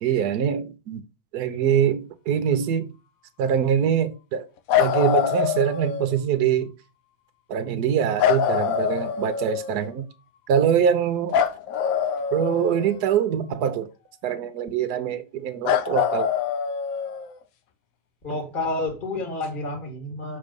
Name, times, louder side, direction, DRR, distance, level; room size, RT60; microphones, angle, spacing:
voice 1, 0.0-1.0 1.3-2.9 3.4-4.4 4.8-6.7 7.5-10.0 10.5-11.3 12.3-13.9 14.2-16.3, right 8 dB, 65° right, 1.3 m, -23 dB
sound 1, 4.7-6.2 8.2-9.8 11.3-13.2 15.6-17.4 19.4-19.5, left 8 dB, 65° left, 0.9 m, -24 dB
voice 2, 18.2-20.4, left 2 dB, 25° left, 2.0 m, -29 dB
6.7 x 3.7 x 5.2 m
omnidirectional pair, 1.9 m